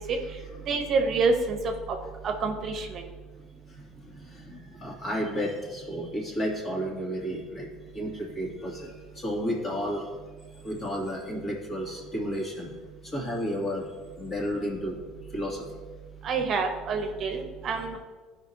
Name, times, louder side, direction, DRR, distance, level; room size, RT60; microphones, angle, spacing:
voice 1, 0.7-2.0 2.2-3.0 16.2-18.0, right 4 dB, 50° right, 4 dB, 1.0 m, -27 dB
voice 2, 4.2-7.7 7.9-10.1 10.6-12.7 13.1-13.8 14.2-15.0 15.3-15.6, equal, 30° left, -2 dB, 2.5 m, -32 dB
13.0 x 5.1 x 2.9 m, 1.4 s
supercardioid pair, 100°, 0 cm